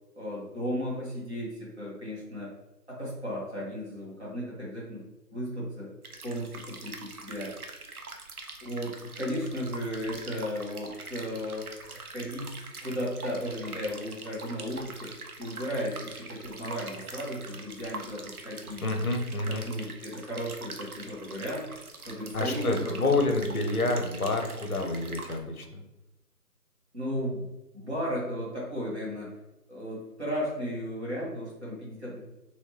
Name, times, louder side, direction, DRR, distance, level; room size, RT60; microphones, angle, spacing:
voice 1, 0.2-2.5 2.9-5.0 5.3-5.9 6.2-7.5 8.6-12.5 12.8-15.1 15.4-18.8 19.3-21.6 22.0-23.2 26.9-27.5 27.7-29.3 29.7-32.2, equal, 45° right, -6 dB, 1.5 m, -35 dB
sound 1, 6.0-25.4, right 3 dB, 65° right, 0.6 m, -44 dB
voice 2, 18.8-19.6 22.3-25.8, left 2 dB, 65° left, 3 dB, 0.7 m, -28 dB
3.2 x 3.1 x 3.0 m, 0.97 s
figure-of-eight pair, 180°, 48 cm